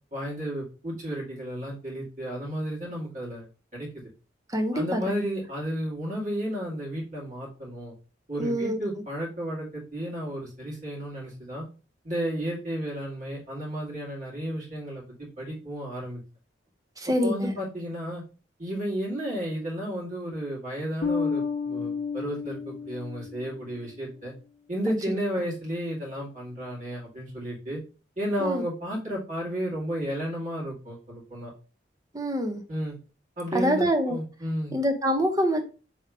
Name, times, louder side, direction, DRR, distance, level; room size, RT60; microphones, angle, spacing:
voice 1, 0.1-3.5 3.7-4.1 4.7-7.9 8.3-11.7 12.0-15.0 15.4-16.2 17.2-18.2 18.6-24.3 24.7-27.8 28.2-31.5 32.7-33.0 33.4-34.8, equal, 40° right, -5 dB, 2.1 m, -33 dB
voice 2, 4.5-5.2 8.4-8.8 17.0-17.6 28.4-28.6 32.1-32.6 33.5-34.2 34.7-35.6, equal, 20° right, 5 dB, 0.6 m, -25 dB
Bass guitar, 21.0-23.7, left 5 dB, 50° left, 0.5 m, -31 dB
3.5 x 3.1 x 4.6 m, 0.35 s
head